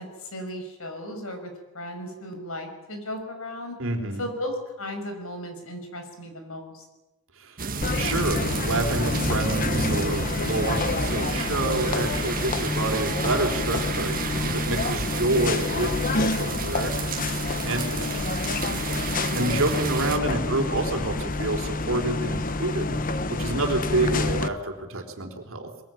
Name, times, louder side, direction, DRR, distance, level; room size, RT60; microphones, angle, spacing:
voice 1, 0.0-3.8 4.2-6.8, left 1 dB, 65° left, 6 dB, 5.8 m, -36 dB
voice 2, 3.8-4.2 7.4-7.7 8.0-14.2 14.4-17.0 17.6-18.4 19.3-23.0 23.3-25.7, right 2 dB, 60° right, 4 dB, 4.0 m, -28 dB
sound 1, 7.6-20.2, right 4 dB, 40° right, 1.6 m, -32 dB
sound 2, 7.8-24.5, left 2 dB, 40° left, 1.1 m, -28 dB
22.5 x 22.5 x 9.3 m, 1.0 s
head